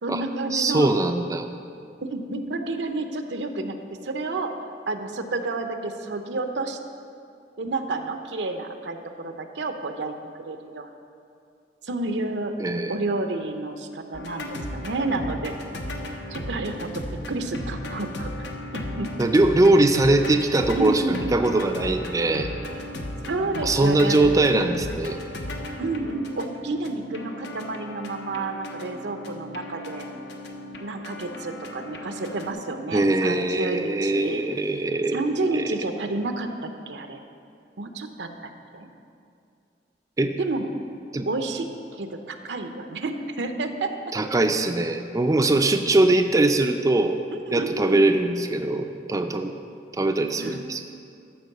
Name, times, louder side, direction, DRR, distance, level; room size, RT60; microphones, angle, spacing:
voice 1, 0.0-0.9 2.0-3.8 4.0-4.5 4.9-6.8 7.6-10.1 10.5-10.9 11.8-12.5 12.9-15.5 16.3-18.3 18.7-19.1 20.8-21.2 23.3-24.3 25.8-30.1 30.8-34.4 35.1-37.2 37.8-38.9 40.4-40.7 41.3-41.7 42.0-43.9 47.5-48.0 50.4-50.6, right 2 dB, 80° right, 6 dB, 0.7 m, -30 dB
voice 2, 0.5-1.5 12.6-13.0 19.2-22.5 23.6-25.2 32.9-35.2 35.5-35.6 40.2-40.3 41.1-41.3 44.1-47.2 47.5-49.5 49.9-50.8, right 2 dB, 20° right, 5 dB, 0.4 m, -21 dB
sound 1, 14.1-32.5, left 1 dB, 80° left, 1.0 m, -36 dB
13.0 x 4.6 x 6.6 m, 2.4 s
head